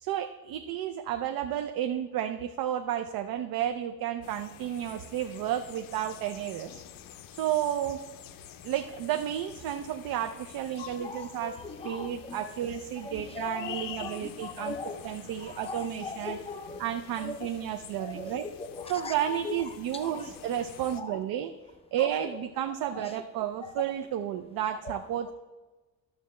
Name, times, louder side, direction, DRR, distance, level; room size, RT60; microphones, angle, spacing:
voice 1, 0.0-6.8 7.3-8.0 8.6-14.8 15.0-16.4 16.8-18.5 18.9-21.5 21.9-25.3, right 11 dB, 70° right, 7 dB, 0.5 m, -32 dB
sound 1, 4.2-21.0, left 10 dB, 65° left, 0.5 m, -48 dB
voice 2, 10.8-12.4 13.0-15.1 15.4-16.8 17.2-17.5 18.0-19.6 19.9-20.3 20.9-21.2 22.0-22.4 22.9-23.1 24.8-25.0, left 4 dB, 15° left, 7 dB, 0.4 m, -40 dB
12.0 x 6.9 x 3.2 m, 1.2 s
cardioid pair, 155°, 37 cm